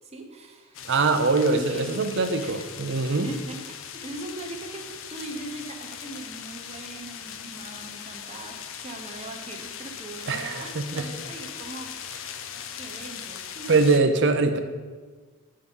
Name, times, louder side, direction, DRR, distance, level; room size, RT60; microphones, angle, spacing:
voice 1, 0.0-0.9 1.2-2.0 2.4-2.7 3.1-11.9 12.2-13.8, right 2 dB, 30° right, 2 dB, 0.9 m, -40 dB
sound 1, 0.7-14.0, left 8 dB, 60° left, 0.5 m, -40 dB
voice 2, 0.9-3.3 10.3-11.1 13.7-14.6, right 3 dB, 55° right, 8 dB, 0.6 m, -23 dB
9.4 x 3.7 x 5.4 m, 1.4 s
head